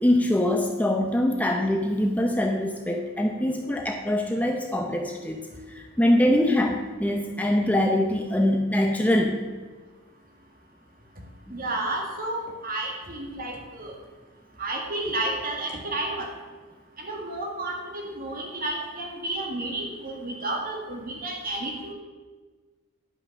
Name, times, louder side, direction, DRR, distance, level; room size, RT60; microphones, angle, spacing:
voice 1, 0.0-5.5 5.7-9.4 11.5-11.6, left 1 dB, 5° left, 2 dB, 0.6 m, -23 dB
voice 2, 11.5-14.0 14.6-16.3 17.0-21.9, right 2 dB, 45° right, 0 dB, 1.9 m, -31 dB
10.5 x 5.8 x 6.5 m, 1.4 s
head